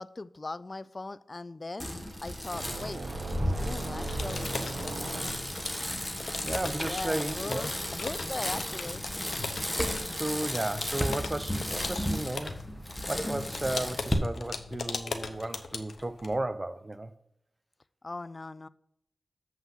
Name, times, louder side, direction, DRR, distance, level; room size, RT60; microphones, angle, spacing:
voice 1, 0.0-1.9 2.2-3.0 3.4-5.3 6.8-9.1 18.0-18.7, left 2 dB, 40° left, 0.4 m, -39 dB
Bicycle, 1.8-14.1, equal, 10° left, 1.2 m, -34 dB
sound 1, 2.5-5.7, right 3 dB, 70° right, 0.9 m, -38 dB
sound 2, 4.0-16.4, left 4 dB, 85° left, 0.7 m, -40 dB
voice 2, 6.4-7.7 10.1-12.6 13.1-17.1, right 1 dB, 25° right, 0.7 m, -34 dB
7.4 x 5.8 x 5.7 m
wide cardioid pair, 65°, 0 cm